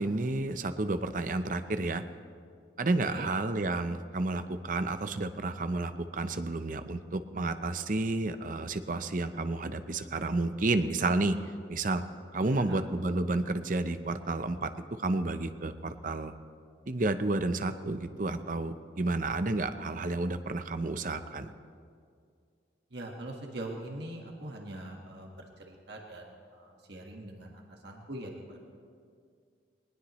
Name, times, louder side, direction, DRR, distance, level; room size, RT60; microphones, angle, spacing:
voice 1, 0.0-2.0 2.8-11.4 11.7-12.0 12.3-14.7 15.0-16.3 16.9-21.5, right 2 dB, 45° right, 10 dB, 0.7 m, -31 dB
voice 2, 3.0-3.3 12.4-12.8 22.9-28.6, right 1 dB, 65° right, 0 dB, 1.6 m, -43 dB
21.5 x 19.5 x 3.1 m, 2.2 s
head